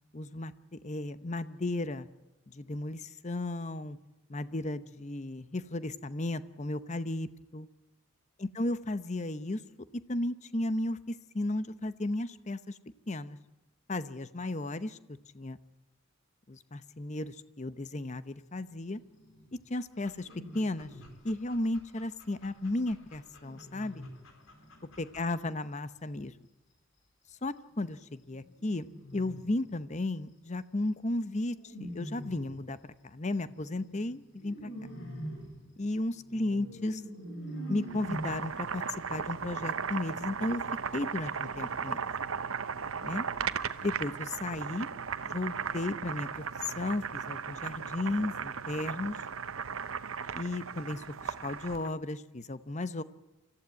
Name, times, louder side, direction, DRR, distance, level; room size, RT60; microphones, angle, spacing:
voice 1, 0.1-2.1 2.5-4.0 4.3-7.7 8.4-9.6 9.9-12.8 13.1-13.4 13.9-15.0 15.3-15.6 16.5-19.0 19.5-20.9 21.2-24.0 25.0-26.3 27.4-28.9 29.1-32.8 33.0-34.7 35.8-37.0 37.7-38.8 39.1-40.6 40.9-42.0 43.0-43.3 43.8-44.9 45.2-49.2 50.3-53.0, left 2 dB, 35° left, 13 dB, 0.8 m, -34 dB
sound 1, 19.0-19.6 20.2-21.2 22.6-25.0 28.3-29.8 31.5-32.7 33.5-38.3, right 1 dB, 60° left, 6.3 m, -44 dB
Dog, 19.9-25.3, left 3 dB, 75° left, 4.1 m, -60 dB
Boiling, 37.8-51.9, right 6 dB, 85° right, 0.9 m, -36 dB
25.5 x 15.0 x 9.5 m, 1.0 s
head